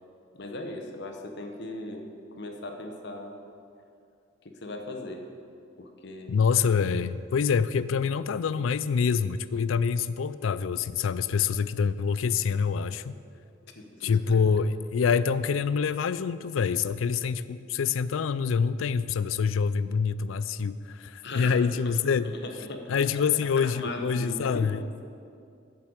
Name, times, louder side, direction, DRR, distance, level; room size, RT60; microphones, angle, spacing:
voice 1, 0.3-2.1 2.4-3.4 4.6-5.3 5.8-6.4 13.8-14.4 21.2-21.6 21.8-21.9 22.2-23.0 23.6-25.0, left 2 dB, 60° left, 4 dB, 1.1 m, -38 dB
voice 2, 6.3-13.2 14.0-22.3 22.9-24.9, left 6 dB, 80° left, 15 dB, 0.4 m, -26 dB
7.7 x 7.5 x 8.0 m, 2.5 s
head